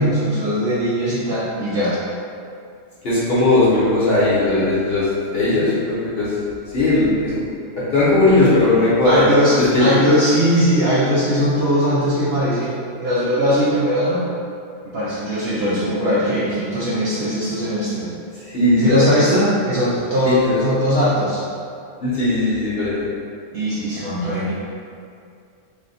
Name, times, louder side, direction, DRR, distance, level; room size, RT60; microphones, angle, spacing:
voice 1, 0.0-2.0 9.0-14.2 14.9-18.1 18.8-21.4 23.5-24.5, equal, 60° right, -9 dB, 0.7 m, -20 dB
voice 2, 3.0-6.3 6.7-7.5 7.7-9.2 9.7-9.9 18.4-19.0 20.3-20.6 22.0-23.1, left 2 dB, 50° left, -10 dB, 0.9 m, -18 dB
3.5 x 2.1 x 3.9 m, 2.4 s
omnidirectional pair, 1.6 m